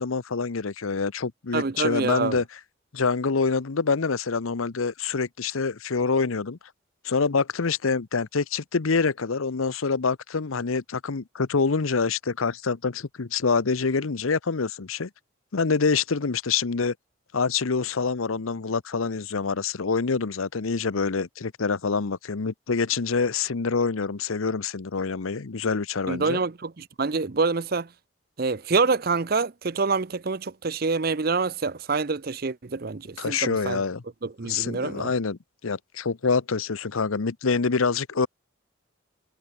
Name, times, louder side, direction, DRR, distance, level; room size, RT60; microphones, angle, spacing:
voice 1, 0.0-2.4 2.9-6.6 7.0-15.1 15.5-16.9 17.3-26.4 33.2-34.0 34.4-38.3, left 4 dB, 85° left, 0.8 m, -26 dB
voice 2, 1.5-2.4 26.1-27.9 28.4-33.8 34.2-35.1, right 4 dB, 45° right, 0.6 m, -26 dB
head